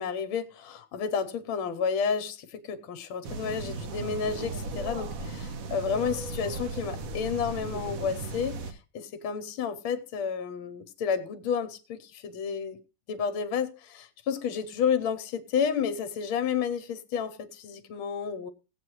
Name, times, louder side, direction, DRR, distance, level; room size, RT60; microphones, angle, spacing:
voice 1, 0.0-12.8 13.1-18.5, left 6 dB, 75° left, 1.6 m, -31 dB
sound 1, 3.2-8.7, right 3 dB, 55° right, 1.0 m, -36 dB
17.5 x 7.8 x 3.0 m
omnidirectional pair, 2.3 m